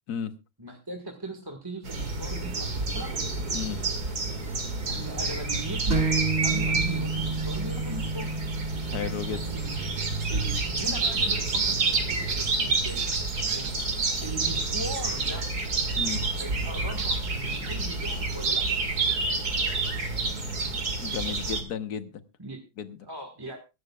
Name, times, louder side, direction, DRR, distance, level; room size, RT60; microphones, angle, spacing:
voice 1, 0.6-3.1 4.9-6.1 6.4-8.3 9.3-10.0 10.3-13.0 13.5-13.8 14.2-15.5 16.4-18.7 22.4-22.6 23.1-23.6, right 1 dB, 15° right, 3 dB, 1.5 m, -39 dB
sound 1, 1.8-21.6, right 3 dB, 50° right, 2.7 m, -29 dB
voice 2, 3.5-3.8 8.9-9.4 16.0-16.3 20.4-20.6 21.0-22.2 22.8-23.0, left 7 dB, 55° left, 10 dB, 1.6 m, -34 dB
sound 2, 5.9-13.4, right 3 dB, 30° right, 3.0 m, -33 dB
23.0 x 12.0 x 2.4 m, 0.28 s
omnidirectional pair, 2.1 m